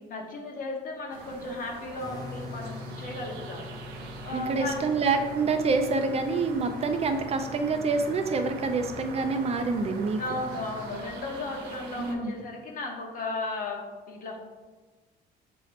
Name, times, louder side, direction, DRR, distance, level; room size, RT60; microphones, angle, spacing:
voice 1, 0.1-3.7 4.2-4.9 10.2-14.4, left 2 dB, 55° left, 1 dB, 1.0 m, -35 dB
sound 1, 1.1-12.2, right 4 dB, 85° right, 0.6 m, -43 dB
sound 2, 2.0-11.0, left 3 dB, 25° left, 0.5 m, -44 dB
voice 2, 4.3-10.2 12.0-12.3, right 4 dB, 40° right, 7 dB, 0.4 m, -27 dB
6.1 x 2.8 x 3.1 m, 1.3 s
cardioid pair, 110°, 17 cm